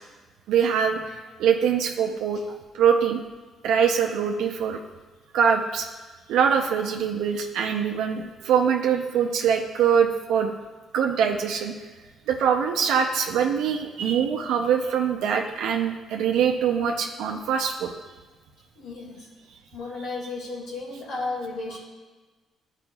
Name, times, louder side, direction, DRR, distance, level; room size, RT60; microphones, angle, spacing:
voice 1, 0.5-1.0 1.4-2.4 2.7-3.2 3.6-4.8 5.3-5.9 6.3-10.5 10.9-11.7 12.3-17.9, right 7 dB, 90° right, 2 dB, 0.5 m, -23 dB
voice 2, 18.8-19.3 19.7-21.8, left 3 dB, 75° left, -3 dB, 2.0 m, -33 dB
12.0 x 4.9 x 2.3 m, 1.3 s
cardioid pair, 90°, 0 cm